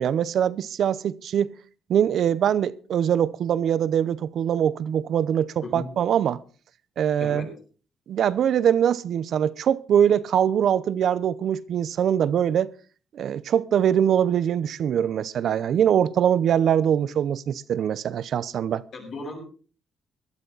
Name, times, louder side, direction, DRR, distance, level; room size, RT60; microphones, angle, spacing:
voice 1, 0.0-1.5 1.9-6.4 7.0-7.5 8.1-12.7 13.1-18.8, right 9 dB, 65° right, 0.7 m, -23 dB
voice 2, 5.6-5.9 7.2-7.6 18.9-19.4, left 3 dB, 65° left, 7.4 m, -36 dB
17.0 x 12.0 x 4.0 m
cardioid pair, 90°, 0 cm